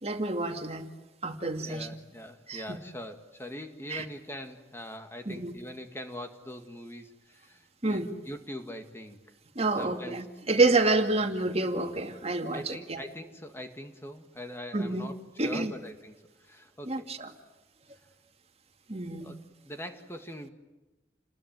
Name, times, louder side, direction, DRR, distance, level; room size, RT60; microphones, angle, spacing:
voice 1, 0.0-0.9 1.2-1.9 2.5-2.8 3.9-4.1 5.3-5.5 7.8-8.1 9.6-13.0 14.7-15.1 15.4-15.7 16.9-17.3 18.9-19.3, right 2 dB, 35° right, 6 dB, 2.2 m, -28 dB
voice 2, 1.6-9.2 9.8-10.2 11.0-11.2 12.5-15.1 15.4-17.1 19.2-20.5, left 1 dB, 15° left, 6 dB, 2.0 m, -42 dB
29.5 x 21.0 x 9.3 m, 1.1 s
head